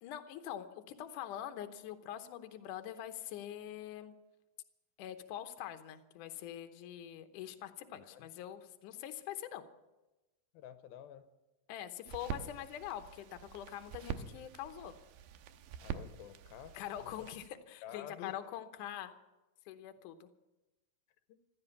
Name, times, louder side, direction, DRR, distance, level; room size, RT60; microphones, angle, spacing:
voice 1, 0.0-4.1 5.0-9.6 11.7-14.9 16.7-19.1 19.7-20.3, left 11 dB, 70° left, 7 dB, 2.3 m, -44 dB
voice 2, 7.9-8.3 10.5-11.3 15.8-17.3 17.8-18.4, left 10 dB, 90° left, 11 dB, 2.7 m, -50 dB
sound 1, 12.1-17.5, right 8 dB, 90° right, 2.7 m, -46 dB
15.5 x 13.0 x 7.0 m, 1.0 s
omnidirectional pair, 4.2 m